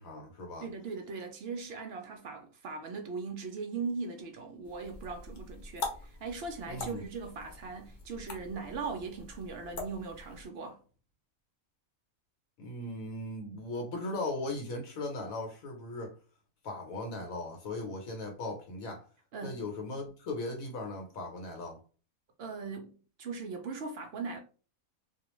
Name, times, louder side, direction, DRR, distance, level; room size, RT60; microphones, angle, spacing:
voice 1, 0.0-0.7 6.7-7.1 12.6-16.1 16.6-19.0 19.4-21.8, left 2 dB, 75° left, 1.1 m, -38 dB
voice 2, 0.6-10.8 19.3-19.6 22.4-22.9 23.2-24.4, right 4 dB, 70° right, 0.6 m, -39 dB
sound 1, 4.6-10.5, left 3 dB, 55° left, 0.5 m, -44 dB
2.3 x 2.3 x 3.0 m
omnidirectional pair, 1.5 m